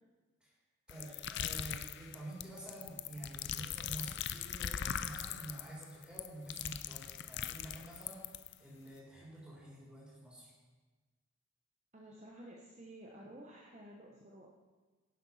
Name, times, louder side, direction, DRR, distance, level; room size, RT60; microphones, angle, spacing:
sound 1, 0.9-8.5, left 9 dB, 50° left, 0.4 m, -40 dB
voice 1, 0.9-10.5, right 1 dB, 5° right, -5 dB, 3.9 m, -49 dB
voice 2, 11.9-14.5, right 1 dB, 30° right, -2 dB, 0.9 m, -53 dB
10.5 x 7.9 x 5.6 m, 1.3 s
head